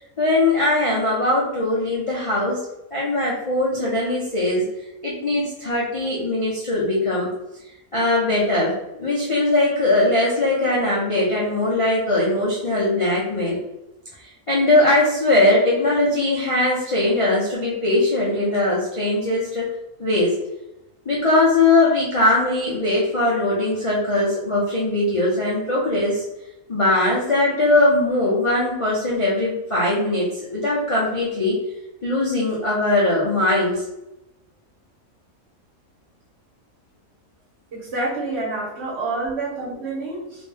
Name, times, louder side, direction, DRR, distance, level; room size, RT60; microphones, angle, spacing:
voice 1, 0.2-2.6 2.9-4.7 5.0-7.3 7.9-13.6 14.5-19.6 20.0-20.3 21.1-26.2 26.7-31.6 32.0-33.8, left 2 dB, 35° left, -7 dB, 0.5 m, -20 dB
voice 2, 37.7-40.4, right 2 dB, 50° right, -5 dB, 1.2 m, -28 dB
3.0 x 2.8 x 3.3 m, 0.90 s
omnidirectional pair, 1.5 m